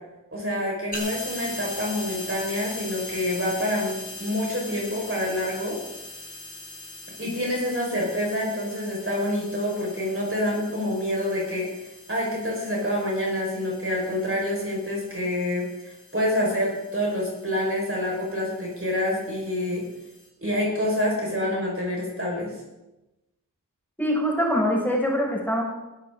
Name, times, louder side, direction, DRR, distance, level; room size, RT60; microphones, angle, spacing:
voice 1, 0.3-5.8 7.2-11.7 12.1-19.8 20.4-22.5, left 1 dB, 45° right, -3 dB, 5.7 m, -27 dB
sound 1, 0.9-20.3, left 2 dB, 25° left, 3.9 m, -41 dB
voice 2, 24.0-25.6, equal, 5° left, -3 dB, 6.8 m, -23 dB
21.0 x 13.5 x 4.0 m, 1.0 s
wide cardioid pair, 55°, 32 cm